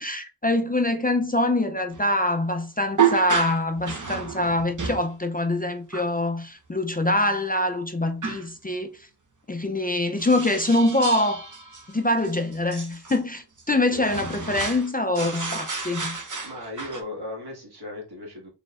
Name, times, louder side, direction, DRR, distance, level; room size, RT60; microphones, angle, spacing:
voice 1, 0.0-8.9 9.5-11.5 11.9-16.2, left 1 dB, 20° left, 0.5 m, -24 dB
sound 1, 1.9-2.0 3.0-5.1 5.9-6.1 8.2-8.5 10.2-13.2 13.6-13.7 13.9-14.9 15.2-17.0, right 7 dB, 45° right, 0.9 m, -30 dB
voice 2, 16.4-18.5, left 1 dB, 65° right, 1.9 m, -37 dB
4.1 x 3.7 x 2.4 m
wide cardioid pair, 60°, 41 cm